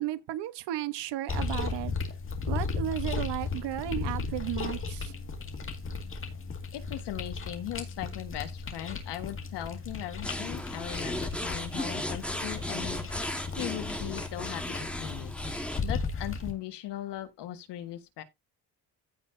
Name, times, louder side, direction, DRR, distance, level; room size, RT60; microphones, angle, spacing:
voice 1, 0.0-1.9 2.5-5.1, right 14 dB, 85° right, 1.1 m, -34 dB
sound 1, 1.3-16.5, left 4 dB, 30° left, 2.1 m, -36 dB
voice 2, 6.7-13.1 13.6-18.2, left 13 dB, 80° left, 1.6 m, -39 dB
sound 2, 10.2-15.8, left 1 dB, 5° left, 1.4 m, -35 dB
15.5 x 5.7 x 2.7 m
cardioid pair, 155°, 40 cm